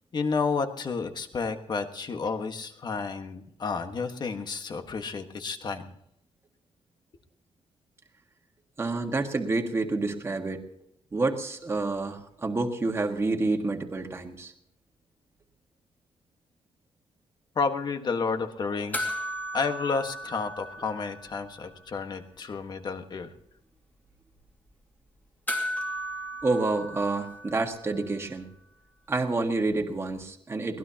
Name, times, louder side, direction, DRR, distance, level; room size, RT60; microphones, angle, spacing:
voice 1, 0.1-5.9 17.5-19.1 19.5-23.3, left 4 dB, 40° left, 7 dB, 1.5 m, -31 dB
voice 2, 8.8-10.6 11.1-14.5 26.4-28.5 29.1-30.8, right 3 dB, 20° right, 3 dB, 1.7 m, -28 dB
sound 1, 18.9-21.6 21.8-21.9 25.5-28.1 30.2-30.3, equal, 15° left, 2.6 m, -35 dB
23.0 x 18.5 x 2.9 m, 0.75 s
wide cardioid pair, 175°, 11 cm